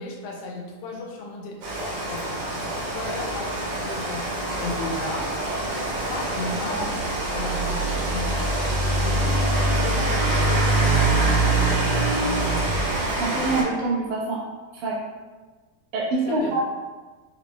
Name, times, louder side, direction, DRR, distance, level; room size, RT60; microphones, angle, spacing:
voice 1, 0.0-5.3 5.8-12.1 16.3-16.6, left 2 dB, 85° left, 0 dB, 2.1 m, -35 dB
Rain, 1.6-13.6, right 2 dB, 65° right, 1.8 m, -24 dB
voice 2, 13.0-14.4 14.7-15.0 15.9-16.7, right 2 dB, 85° right, -6 dB, 2.2 m, -25 dB
5.6 x 2.0 x 3.2 m, 1.3 s
omnidirectional pair, 3.4 m